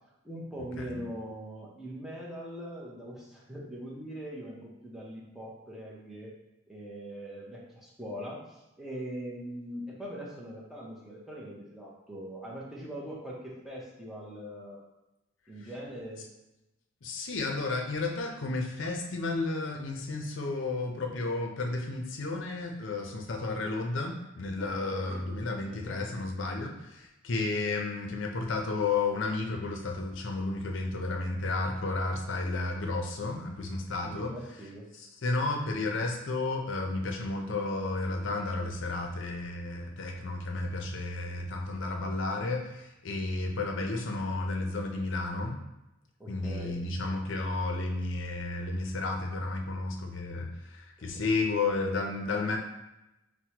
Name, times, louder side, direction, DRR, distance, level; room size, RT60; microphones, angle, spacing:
voice 1, 0.2-6.3 6.7-14.8 15.5-16.2 24.6-25.2 25.5-26.0 34.0-34.9 46.2-46.8 51.0-51.3, equal, ahead, -5 dB, 0.6 m, -42 dB
voice 2, 17.0-34.3 35.0-45.6 46.3-52.6, left 3 dB, 60° left, 2 dB, 0.5 m, -32 dB
6.0 x 2.1 x 2.8 m, 0.94 s
head